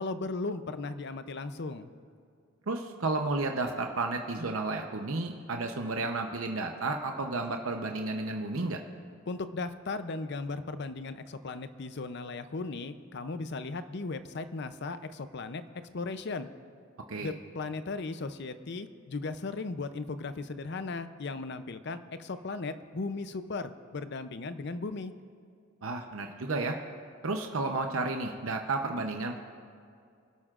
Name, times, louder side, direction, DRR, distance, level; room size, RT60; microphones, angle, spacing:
voice 1, 0.0-1.9 9.3-15.6 15.9-16.5 17.2-25.1, left 3 dB, 55° left, 11 dB, 0.6 m, -36 dB
voice 2, 2.7-8.8 17.1-17.3 25.8-26.8 27.2-29.4, right 3 dB, 80° right, 4 dB, 0.8 m, -32 dB
25.0 x 12.0 x 2.5 m, 2.3 s
head